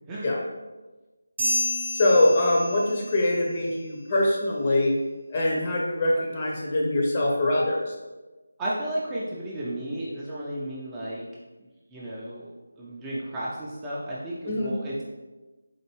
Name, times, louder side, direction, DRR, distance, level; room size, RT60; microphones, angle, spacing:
sound 1, 1.4-3.2, left 1 dB, 40° right, 0.9 m, -29 dB
voice 1, 1.9-4.9 5.3-7.9 14.5-14.7, left 1 dB, 30° left, -2 dB, 0.6 m, -23 dB
voice 2, 8.6-11.2 11.9-15.0, right 1 dB, 10° right, -8 dB, 0.4 m, -33 dB
4.3 x 2.5 x 2.9 m, 1.2 s
figure-of-eight pair, 160°, 0 cm